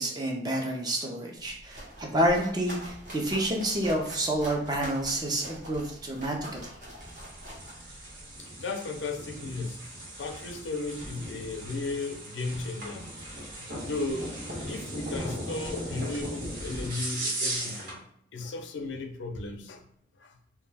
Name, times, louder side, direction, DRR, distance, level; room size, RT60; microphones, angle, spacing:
voice 1, 0.0-6.6, right 1 dB, 20° right, 1 dB, 0.5 m, -29 dB
sound 1, 1.4-8.4, equal, 45° right, 0.8 m, -44 dB
sound 2, 7.0-18.0, right 1 dB, 75° right, 1.1 m, -37 dB
voice 2, 8.6-13.1 13.6-14.3 14.7-18.0 18.3-19.8 20.2-20.4, left 3 dB, 90° left, 5 dB, 0.4 m, -35 dB
2.2 x 2.1 x 3.3 m, 0.68 s
head